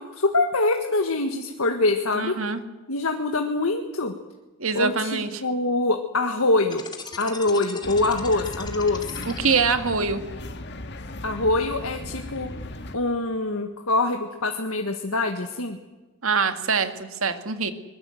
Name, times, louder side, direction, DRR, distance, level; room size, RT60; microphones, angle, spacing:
voice 1, 0.0-2.3 2.9-4.1 4.7-6.8 7.2-9.2 11.2-12.5 12.9-15.8, left 2 dB, 85° left, 4 dB, 1.6 m, -24 dB
voice 2, 2.2-2.6 4.6-5.4 9.3-10.2 16.2-17.7, right 5 dB, 75° right, 8 dB, 2.0 m, -24 dB
sound 1, 6.7-10.2, left 4 dB, 20° left, 2.2 m, -39 dB
sound 2, 7.8-13.0, left 1 dB, 55° left, 1.9 m, -37 dB
24.5 x 21.5 x 7.9 m, 1.1 s
head